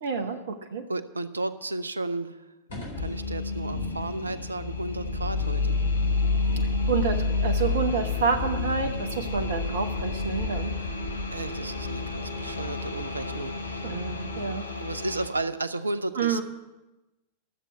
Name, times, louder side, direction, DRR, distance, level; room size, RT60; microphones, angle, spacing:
voice 1, 0.0-0.8 6.9-10.7 13.8-14.6 16.1-16.4, right 5 dB, 60° right, 7 dB, 1.0 m, -28 dB
voice 2, 0.9-2.4 3.0-5.8 11.3-13.9 14.4-16.4, right 2 dB, 80° right, 13 dB, 0.6 m, -33 dB
sound 1, 2.7-14.5, left 3 dB, 65° left, 4.0 m, -31 dB
sound 2, 2.9-15.3, left 3 dB, 80° left, 1.1 m, -34 dB
13.0 x 7.5 x 8.0 m, 1.1 s
figure-of-eight pair, 90°, 0 cm